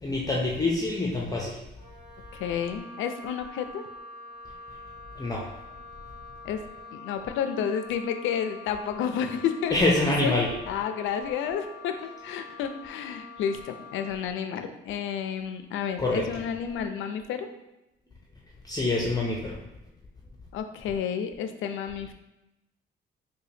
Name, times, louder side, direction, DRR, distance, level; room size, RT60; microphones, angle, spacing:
voice 1, 0.0-1.6 5.2-5.4 9.7-10.5 16.0-16.2 18.7-19.6, left 2 dB, 20° left, -3 dB, 0.5 m, -25 dB
Wind instrument woodwind instrument, 1.7-14.2, left 4 dB, 40° right, 0.9 m, -46 dB
voice 2, 2.3-3.8 6.4-6.6 6.9-9.8 10.1-10.3 10.7-17.5 20.5-22.1, left 8 dB, 80° left, 8 dB, 0.4 m, -31 dB
4.9 x 2.2 x 2.7 m, 0.93 s
cardioid pair, 90°, 20 cm